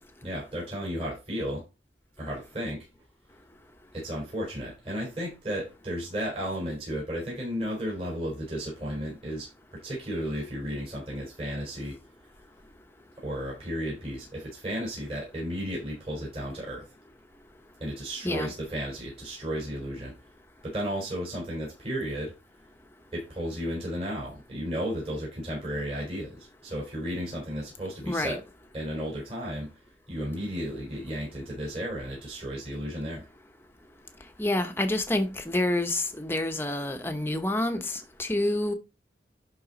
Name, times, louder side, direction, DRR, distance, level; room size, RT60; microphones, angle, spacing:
voice 1, 0.2-1.6 2.2-2.9 3.9-12.0 13.2-16.8 17.8-20.1 20.6-22.3 23.1-28.4 28.7-29.7 30.1-33.2, equal, 35° right, 3.8 m, -33 dB
voice 2, 28.0-28.4 34.4-38.7, left 1 dB, 15° left, 0.9 m, -28 dB
11.0 x 4.0 x 4.0 m
head